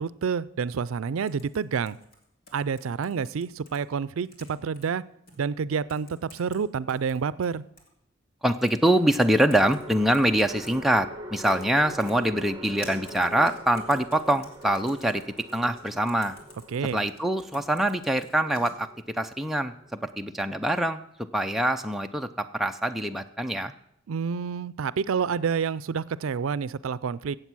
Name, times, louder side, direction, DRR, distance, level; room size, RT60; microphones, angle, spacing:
voice 1, 0.0-2.0 2.5-5.0 5.4-7.6 16.7-17.0 24.1-27.4, right 6 dB, 85° right, 18 dB, 0.4 m, -28 dB
sound 1, 1.3-3.8 4.2-4.9 5.3-5.4 5.9-6.6 6.9-7.9 8.7-9.0 9.2-10.8 11.5-11.7 12.0-18.7, left 1 dB, 45° left, 2.9 m, -49 dB
sound 2, 5.8-6.6 8.9-20.3, equal, 20° right, 1.2 m, -44 dB
voice 2, 8.4-15.2 15.5-16.4 16.9-21.0 21.3-23.7, right 1 dB, ahead, 4 dB, 0.5 m, -24 dB
15.5 x 8.0 x 6.1 m, 0.75 s
head